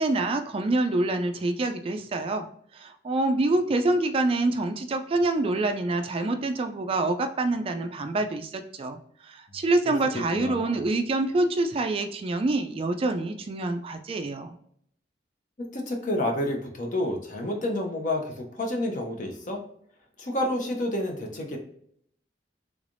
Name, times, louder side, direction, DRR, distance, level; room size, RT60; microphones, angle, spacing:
voice 1, 0.0-2.5 2.7-14.6, right 2 dB, 30° right, 7 dB, 0.3 m, -26 dB
voice 2, 9.9-10.8 15.7-19.6 20.2-21.6, left 1 dB, 45° left, 2 dB, 0.8 m, -29 dB
3.5 x 3.3 x 2.5 m, 0.67 s
head